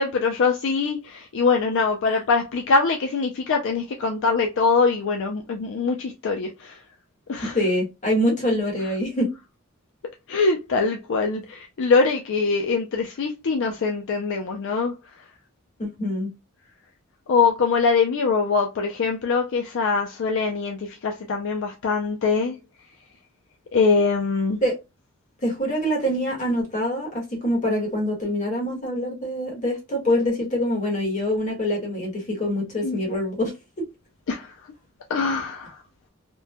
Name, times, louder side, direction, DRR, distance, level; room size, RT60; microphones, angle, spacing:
voice 1, 0.0-6.8 7.3-7.6 10.3-14.9 17.3-22.6 23.7-24.6 32.8-33.0 34.3-34.5 35.1-35.8, left 4 dB, 60° left, 0.4 m, -23 dB
voice 2, 7.5-9.3 15.8-16.3 24.6-24.8 25.4-33.5, equal, 35° left, 1.2 m, -25 dB
3.0 x 2.1 x 2.2 m
head